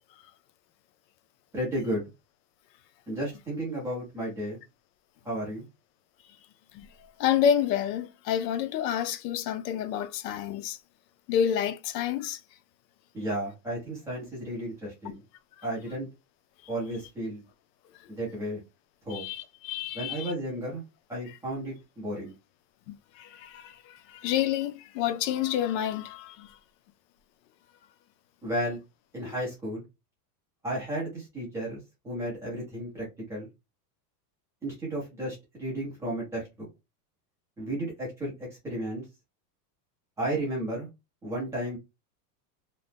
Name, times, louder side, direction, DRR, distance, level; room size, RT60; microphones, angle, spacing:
voice 1, 1.5-2.0 3.1-4.6 5.2-5.7 13.1-15.2 15.6-16.1 16.7-17.4 18.1-18.6 19.1-19.2 19.9-20.8 21.1-22.3 28.4-28.8 29.1-29.8 30.6-33.5 34.6-36.4 37.6-38.3 38.6-39.0 40.2-40.9 41.2-41.8, right 1 dB, 5° right, 0.5 m, -33 dB
voice 2, 7.2-10.8 11.3-12.4 19.1-20.3 22.9-26.5 29.2-29.3, left 9 dB, 75° left, 0.6 m, -29 dB
2.8 x 2.0 x 3.2 m
supercardioid pair, 170°, 50 cm